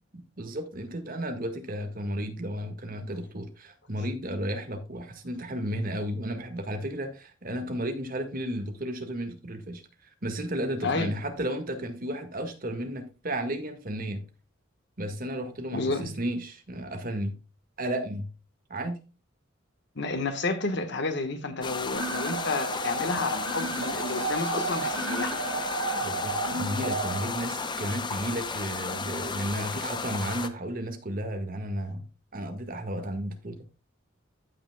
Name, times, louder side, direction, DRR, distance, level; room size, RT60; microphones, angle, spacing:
voice 1, 0.1-9.8 10.2-14.2 15.0-17.3 17.8-18.3 18.7-19.0 25.9-32.1 32.3-33.6, right 1 dB, 45° right, 1.8 m, -33 dB
voice 2, 10.8-11.1 15.7-16.1 19.9-25.4, left 3 dB, 60° left, 1.4 m, -30 dB
sound 1, 21.6-30.5, left 4 dB, 25° left, 0.7 m, -34 dB
sound 2, 22.0-27.9, right 2 dB, 85° right, 1.8 m, -33 dB
15.0 x 6.0 x 2.3 m
head